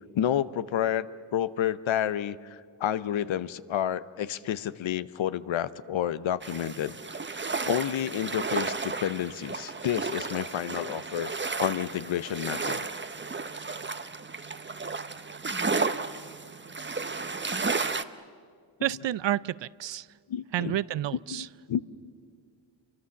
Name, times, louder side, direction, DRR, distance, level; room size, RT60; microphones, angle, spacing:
voice 1, 0.1-1.1 1.3-7.0 7.6-11.3 11.6-12.9 20.3-20.8 21.1-21.8, left 10 dB, 75° left, 15 dB, 0.9 m, -30 dB
sound 1, 6.4-18.0, right 4 dB, 25° right, 1.0 m, -33 dB
voice 2, 18.8-20.1 20.5-21.5, right 13 dB, 65° right, 19 dB, 0.6 m, -30 dB
28.0 x 24.0 x 7.2 m, 2.1 s
cardioid pair, 60°, 47 cm